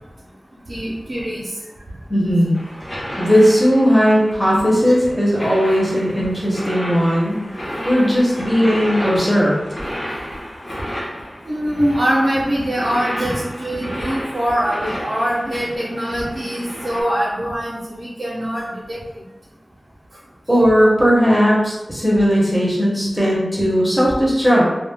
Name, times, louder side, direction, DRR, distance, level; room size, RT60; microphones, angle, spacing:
voice 1, 0.7-1.5 3.3-3.4 11.5-19.0, equal, 50° right, -7 dB, 0.6 m, -23 dB
voice 2, 2.1-2.6 3.2-9.6 20.5-24.7, equal, 5° right, -6 dB, 0.7 m, -17 dB
sound 1, 2.5-17.0, equal, 40° left, 0.9 m, -32 dB
2.3 x 2.1 x 3.3 m, 1.1 s
wide cardioid pair, 55°, 0 cm